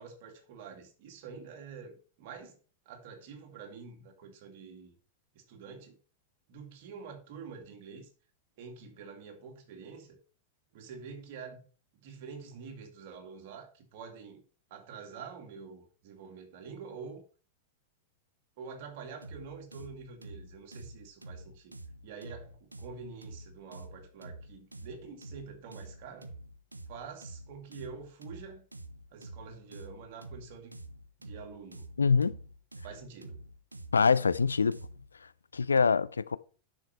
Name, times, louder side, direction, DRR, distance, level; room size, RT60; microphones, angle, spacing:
voice 1, 0.0-2.6 2.9-4.9 5.3-6.0 6.5-8.1 8.6-10.2 10.7-11.7 11.9-14.4 14.7-17.2 18.6-21.8 22.0-26.3 26.9-28.6 29.1-30.7 31.2-31.9 32.8-33.4, right 5 dB, 50° right, 2.5 m, -47 dB
sound 1, 19.2-35.1, right 1 dB, 85° right, 0.8 m, -47 dB
voice 2, 32.0-32.4 33.9-34.8 35.5-36.4, left 5 dB, 75° left, 0.4 m, -24 dB
9.8 x 6.6 x 4.5 m
figure-of-eight pair, 90°, 0 cm